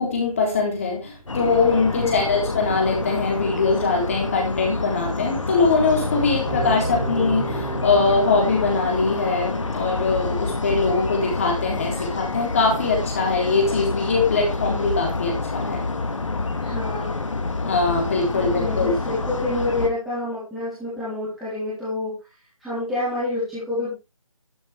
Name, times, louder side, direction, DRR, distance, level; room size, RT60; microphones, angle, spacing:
voice 1, 0.0-15.9 17.6-18.9, left 4 dB, 25° left, 0 dB, 3.8 m, -22 dB
sound 1, 1.3-19.9, left 3 dB, 60° left, 1.9 m, -28 dB
voice 2, 2.0-2.3 16.6-17.2 18.5-22.1 22.6-23.9, left 2 dB, ahead, -14 dB, 3.6 m, -28 dB
sound 2, 6.4-9.2, right 3 dB, 20° right, 2.8 m, -31 dB
12.0 x 10.5 x 3.5 m, 0.26 s
figure-of-eight pair, 175°, 18 cm